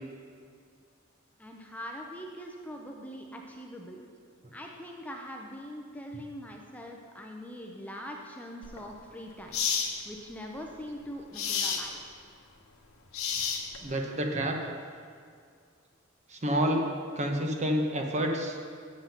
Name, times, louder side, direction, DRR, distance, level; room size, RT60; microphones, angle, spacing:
voice 1, 1.4-4.0 4.5-9.6 10.0-12.2, equal, 5° left, 1 dB, 0.6 m, -42 dB
sound 1, 8.6-8.8 9.5-9.9 11.3-11.9 13.1-13.9, left 7 dB, 85° left, 0.9 m, -30 dB
voice 2, 13.8-14.6 16.3-16.9 17.2-18.6, equal, 35° right, 2 dB, 1.0 m, -28 dB
7.8 x 7.3 x 5.8 m, 2.2 s
head